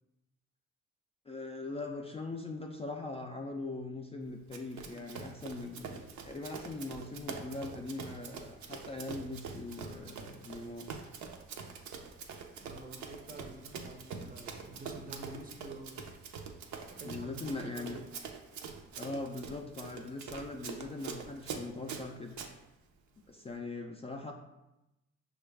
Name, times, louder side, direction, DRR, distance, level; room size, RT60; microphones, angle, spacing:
voice 1, 1.3-10.9 17.0-18.0 19.0-22.3 23.3-24.3, left 3 dB, 20° left, 1 dB, 0.3 m, -41 dB
Run, 4.5-22.5, right 5 dB, 70° right, 0.6 m, -44 dB
voice 2, 12.6-16.0 16.9-18.1, right 2 dB, 30° right, 4 dB, 0.6 m, -49 dB
5.9 x 2.3 x 3.3 m, 0.95 s
cardioid pair, 90°, 30 cm